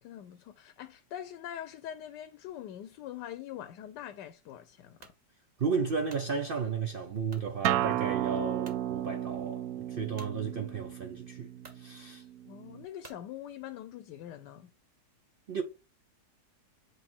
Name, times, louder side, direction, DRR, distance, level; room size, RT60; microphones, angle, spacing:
voice 1, 0.0-5.1 12.4-14.7, left 11 dB, 85° left, 1.2 m, -43 dB
sound 1, 5.0-5.2 5.8-6.3 7.3-7.5 8.1-8.2 8.6-8.8 10.2-10.4 11.1-11.2 11.6-11.8 13.0-13.3, right 3 dB, 30° right, 0.9 m, -52 dB
voice 2, 5.6-9.6 9.9-11.5 11.7-12.2 15.5-15.6, right 5 dB, 85° right, 0.4 m, -33 dB
Acoustic guitar, 7.6-12.8, right 12 dB, 70° right, 1.0 m, -33 dB
7.9 x 3.2 x 4.4 m
omnidirectional pair, 1.8 m